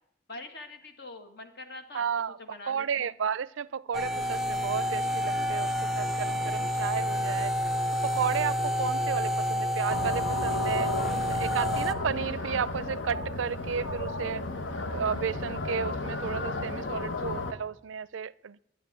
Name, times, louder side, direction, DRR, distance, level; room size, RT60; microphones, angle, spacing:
voice 1, 0.3-2.1 2.4-3.1, left 2 dB, 55° left, 2.0 m, -44 dB
voice 2, 1.9-2.4 2.7-7.5 8.0-10.9 11.3-14.4 14.8-18.6, right 7 dB, 85° right, 0.4 m, -33 dB
sound 1, 3.9-11.9, equal, ahead, 0.5 m, -29 dB
sound 2, 9.9-17.5, left 2 dB, 80° left, 1.3 m, -33 dB
11.5 x 10.5 x 9.8 m
head